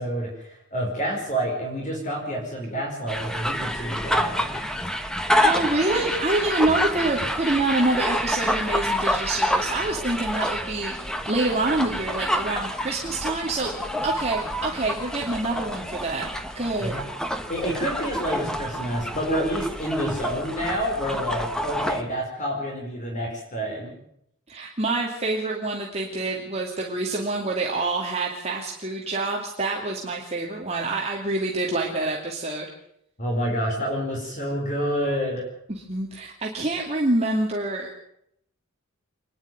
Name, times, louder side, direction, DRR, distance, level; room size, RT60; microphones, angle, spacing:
voice 1, 0.0-4.6 16.8-17.0 17.5-23.9 33.2-35.4, equal, 35° left, -1 dB, 5.0 m, -28 dB
sound 1, 3.1-22.0, equal, 5° left, 1.4 m, -28 dB
voice 2, 5.4-13.7 14.0-16.3 16.5-16.9 24.5-32.7 35.7-38.0, right 2 dB, 30° right, -2 dB, 2.6 m, -26 dB
26.5 x 11.0 x 9.3 m, 0.75 s
head